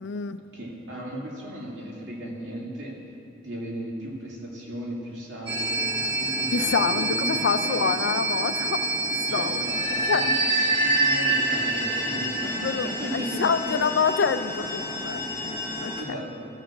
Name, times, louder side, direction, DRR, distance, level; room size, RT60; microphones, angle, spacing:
voice 1, 0.0-0.4 6.5-8.9 9.3-9.6 10.1-10.2 12.6-15.9, left 5 dB, 60° left, 11 dB, 0.4 m, -27 dB
voice 2, 0.5-2.9 3.4-8.0 9.3-13.8 16.0-16.5, right 1 dB, 70° right, -4 dB, 2.4 m, -36 dB
sound 1, 5.5-16.0, right 2 dB, 25° right, 1.3 m, -27 dB
14.0 x 5.2 x 7.3 m, 2.9 s
head